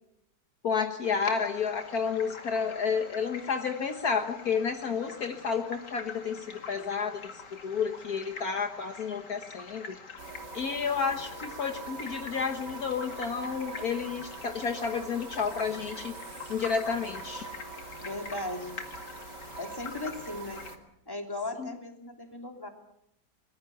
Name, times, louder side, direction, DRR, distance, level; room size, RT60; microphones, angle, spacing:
voice 1, 0.6-10.0 10.5-16.1 16.5-17.5 21.6-21.7, left 6 dB, 60° left, 6 dB, 1.7 m, -31 dB
sound 1, 1.0-20.8, left 4 dB, 80° left, 2.9 m, -45 dB
sound 2, 10.2-20.8, right 4 dB, 80° right, 2.8 m, -44 dB
voice 2, 18.0-18.8 19.6-20.7 21.1-22.7, left 2 dB, 15° left, 3 dB, 3.0 m, -37 dB
24.0 x 20.5 x 7.0 m, 0.77 s
omnidirectional pair, 1.8 m